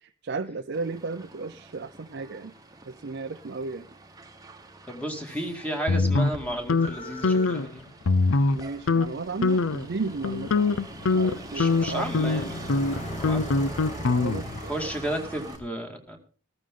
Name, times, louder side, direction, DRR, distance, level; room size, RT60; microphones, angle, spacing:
voice 1, 0.0-2.5 2.9-3.9 8.5-10.7 11.1-12.4 14.1-14.7, right 4 dB, 55° right, 7 dB, 0.5 m, -34 dB
Motor vehicle (road), 0.7-15.6, right 3 dB, 20° right, 1.2 m, -46 dB
sound 1, 4.9-5.0 5.2-15.6, equal, 35° left, 2.6 m, -41 dB
voice 2, 4.9-7.8 11.5-12.6 13.2-13.7 14.7-16.2, right 1 dB, 5° left, 3 dB, 2.2 m, -33 dB
sound 2, 5.9-6.9 7.2-7.7 8.1-8.6 8.9-9.1 9.4-9.9 10.2-14.6, left 3 dB, 85° left, 0.6 m, -23 dB
14.5 x 13.5 x 3.8 m, 0.40 s
head